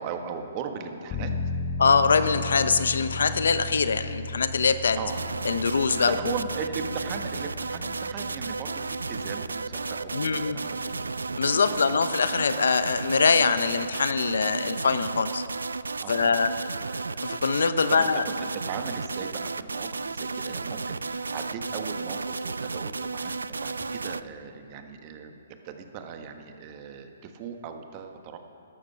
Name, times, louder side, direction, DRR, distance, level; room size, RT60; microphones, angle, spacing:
voice 1, 0.0-1.3 5.0-5.2 6.0-11.1 11.6-11.8 16.0-16.5 17.9-18.4 18.6-28.4, right 6 dB, 35° right, 6 dB, 1.4 m, -38 dB
sound 1, 1.1-13.6 14.0-14.1, left 3 dB, 25° left, 1.1 m, -37 dB
voice 2, 1.8-5.0 5.4-6.2 10.1-10.6 11.4-15.4 16.1-16.5 17.2-18.2, left 5 dB, 75° left, 12 dB, 0.8 m, -23 dB
sound 2, 5.1-24.2, right 4 dB, 85° right, 0.4 m, -33 dB
Wind, 9.3-17.7, right 2 dB, 55° right, 3.3 m, -52 dB
14.0 x 12.0 x 5.8 m, 2.6 s
hypercardioid pair, 140°, 0 cm